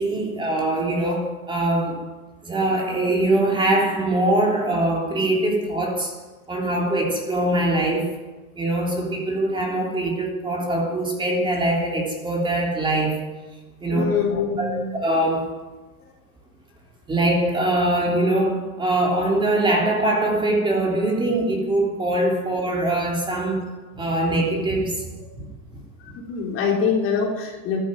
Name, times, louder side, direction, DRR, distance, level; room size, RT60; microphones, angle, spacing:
voice 1, 0.0-2.1 2.4-6.2 6.5-8.2 8.5-13.3 13.8-14.1 14.6-15.6 17.1-26.1, right 1 dB, 10° right, -2 dB, 3.2 m, -23 dB
voice 2, 13.8-14.9 26.3-27.8, left 5 dB, 30° left, 0 dB, 3.4 m, -24 dB
13.0 x 11.5 x 9.4 m, 1.2 s
supercardioid pair, 150°, 44 cm